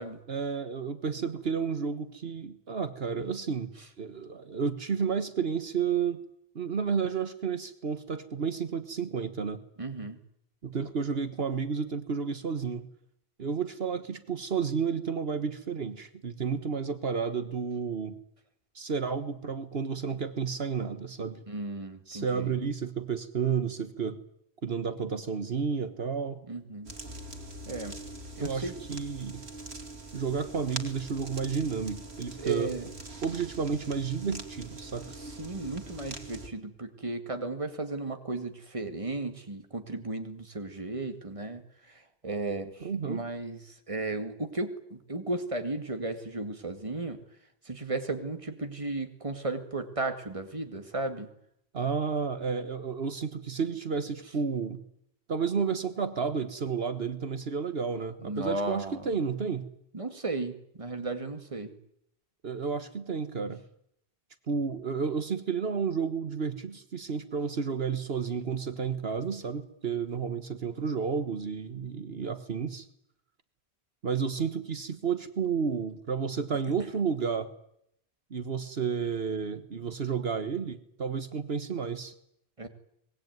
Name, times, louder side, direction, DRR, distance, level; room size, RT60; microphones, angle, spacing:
voice 1, 0.3-3.7 4.0-6.2 6.5-9.6 10.6-12.9 13.4-18.1 18.7-21.4 22.1-24.2 24.6-26.4 28.4-29.4 30.1-32.7 33.2-35.1 42.8-43.3 51.7-54.8 55.3-59.7 62.4-63.6 64.5-72.9 74.0-77.5 78.3-82.1, right 6 dB, 70° right, 10 dB, 1.6 m, -31 dB
voice 2, 9.8-10.2 21.5-22.5 26.5-26.9 27.7-27.9 28.4-28.7 32.4-32.9 35.2-41.6 41.9-47.2 47.7-51.3 58.2-59.1 59.9-61.7 82.6-82.7, right 2 dB, 30° right, 7 dB, 2.2 m, -35 dB
sound 1, 26.8-36.5, right 2 dB, 90° right, 2.8 m, -43 dB
24.0 x 20.5 x 9.4 m, 0.75 s
omnidirectional pair, 1.1 m